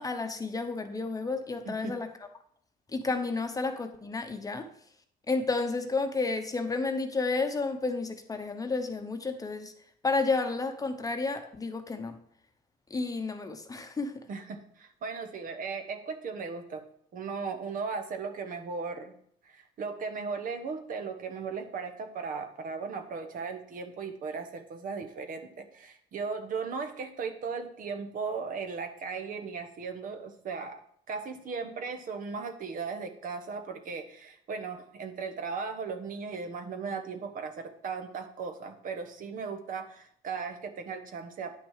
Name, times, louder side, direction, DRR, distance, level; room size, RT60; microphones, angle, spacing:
voice 1, 0.0-2.1 2.9-4.7 5.3-9.7 10.0-12.1 12.9-14.1, left 3 dB, 20° left, 6 dB, 0.9 m, -31 dB
voice 2, 14.3-16.8 17.1-19.1 19.4-41.6, right 5 dB, 55° right, 7 dB, 1.3 m, -37 dB
9.7 x 6.0 x 4.9 m, 0.65 s
cardioid pair, 110°, 17 cm